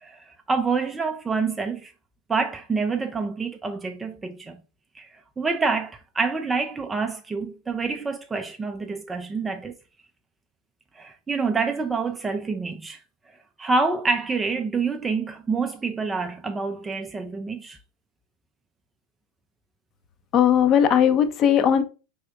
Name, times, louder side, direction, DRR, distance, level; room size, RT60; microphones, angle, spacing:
voice 1, 0.0-1.9 2.3-4.6 4.9-5.1 5.4-9.7 11.0-13.0 13.6-17.8, right 4 dB, 15° right, 0.4 m, -27 dB
voice 2, 20.3-21.8, left 9 dB, 30° left, 0.6 m, -18 dB
5.0 x 3.5 x 2.4 m
figure-of-eight pair, 90°, 0 cm